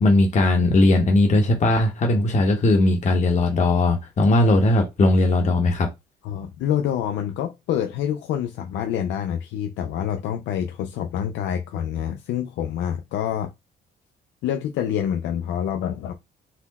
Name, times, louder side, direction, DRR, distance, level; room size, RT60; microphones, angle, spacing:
voice 1, 0.0-5.9, left 2 dB, 40° left, 1.1 m, -18 dB
voice 2, 6.2-13.5 14.4-16.1, left 9 dB, 85° left, 0.6 m, -27 dB
4.3 x 2.2 x 4.1 m
cardioid pair, 100°, 18 cm